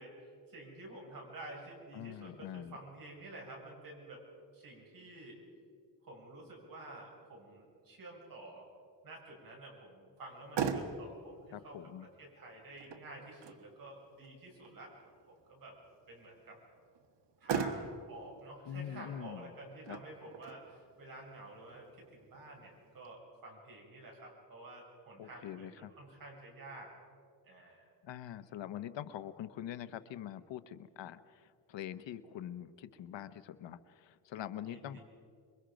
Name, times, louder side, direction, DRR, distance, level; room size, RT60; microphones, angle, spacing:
voice 1, 0.0-4.2 4.5-5.4 6.0-8.7 9.0-11.9 12.2-14.9 15.3-15.7 16.1-16.6 17.4-26.9 27.4-27.8 34.7-35.0, right 2 dB, 50° right, -1 dB, 6.9 m, -50 dB
voice 2, 1.9-2.8 11.5-12.1 18.7-19.5 19.9-20.0 25.2-25.9 28.0-35.0, left 10 dB, 90° left, 12 dB, 1.0 m, -44 dB
Motor vehicle (road), 10.2-23.1, right 6 dB, 75° right, 1.6 m, -43 dB
27.0 x 23.0 x 5.2 m, 2.2 s
wide cardioid pair, 145°, 43 cm